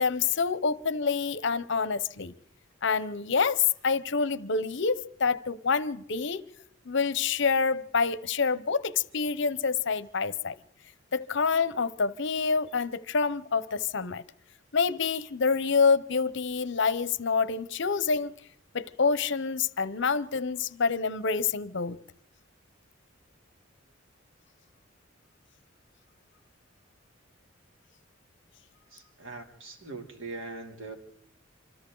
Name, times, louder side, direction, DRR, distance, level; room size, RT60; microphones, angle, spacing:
voice 1, 0.0-2.3 2.8-6.4 6.8-10.6 11.1-14.2 14.7-18.3 18.7-22.0, left 5 dB, 60° left, 0.8 m, -27 dB
voice 2, 28.9-30.9, right 3 dB, 75° right, 3.1 m, -41 dB
27.5 x 25.5 x 3.9 m
head